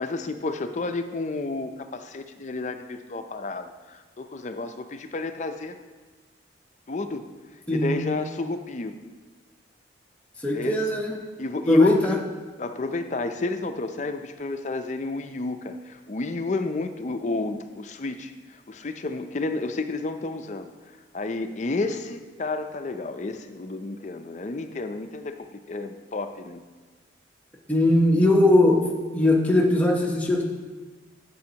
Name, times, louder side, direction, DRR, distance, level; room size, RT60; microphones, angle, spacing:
voice 1, 0.0-5.8 6.9-7.3 7.7-9.0 10.5-10.8 11.4-12.2 12.6-20.7 21.1-26.6, left 3 dB, 40° left, 8 dB, 0.5 m, -30 dB
voice 2, 10.4-11.1 11.7-12.1 27.7-28.8 29.1-30.4, left 1 dB, 10° left, -1 dB, 0.8 m, -20 dB
13.0 x 6.9 x 2.9 m, 1.4 s
head